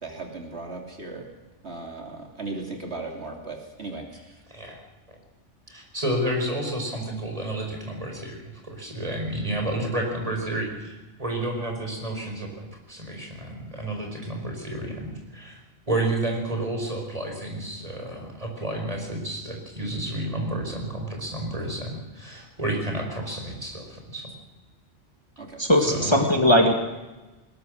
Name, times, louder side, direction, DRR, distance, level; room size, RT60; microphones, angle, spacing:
voice 1, 0.0-1.3 1.6-4.4 25.4-25.6, right 3 dB, 55° right, 1 dB, 3.2 m, -37 dB
voice 2, 5.7-15.6 15.9-24.3 25.8-26.2, right 1 dB, 30° right, 2 dB, 5.0 m, -31 dB
voice 3, 25.6-26.7, left 1 dB, 20° left, 3 dB, 2.0 m, -19 dB
20.5 x 20.0 x 6.5 m, 1.1 s
omnidirectional pair, 1.3 m